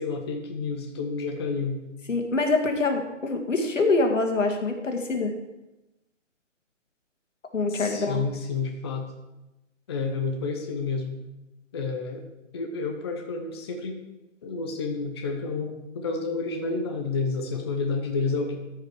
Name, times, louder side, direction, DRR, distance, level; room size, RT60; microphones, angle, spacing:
voice 1, 0.0-1.8 7.7-9.1 9.9-11.2 11.7-12.3 12.5-14.0 14.4-18.6, left 4 dB, 20° left, 3 dB, 0.7 m, -30 dB
voice 2, 2.1-5.3 7.5-8.2, left 3 dB, 75° left, 4 dB, 2.0 m, -25 dB
14.0 x 5.1 x 4.8 m, 0.98 s
hypercardioid pair, 155°, 37 cm